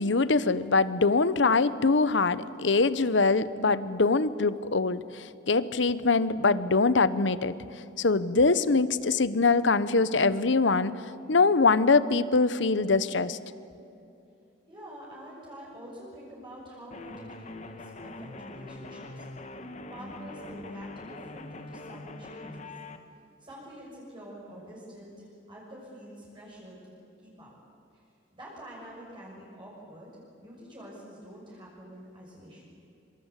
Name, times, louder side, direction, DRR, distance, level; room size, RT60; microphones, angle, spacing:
voice 1, 0.0-7.5 8.0-10.9 11.3-13.4, left 3 dB, 70° left, 15 dB, 0.9 m, -23 dB
voice 2, 14.7-19.3 19.9-22.8 23.4-26.9 27.2-27.5 27.9-28.0 28.3-30.1 30.4-32.6, equal, 25° right, -5 dB, 6.7 m, -46 dB
sound 1, 16.9-23.0, left 2 dB, 40° left, 1.5 m, -43 dB
26.0 x 25.0 x 8.3 m, 2.7 s
head